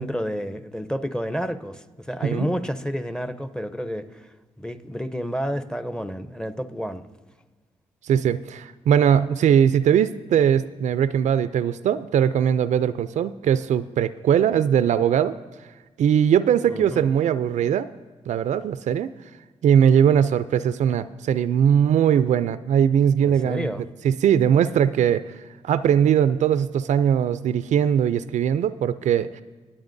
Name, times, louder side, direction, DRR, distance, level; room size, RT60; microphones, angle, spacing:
voice 1, 0.0-7.1 16.7-17.0 23.2-23.8 24.4-24.5, equal, 5° left, 10 dB, 0.6 m, -30 dB
voice 2, 8.1-15.3 16.0-17.9 18.3-19.1 19.6-23.7 24.0-25.2 25.6-29.4, right 9 dB, 75° right, 14 dB, 0.4 m, -20 dB
22.5 x 8.8 x 2.6 m, 1.3 s
cardioid pair, 75°, 12 cm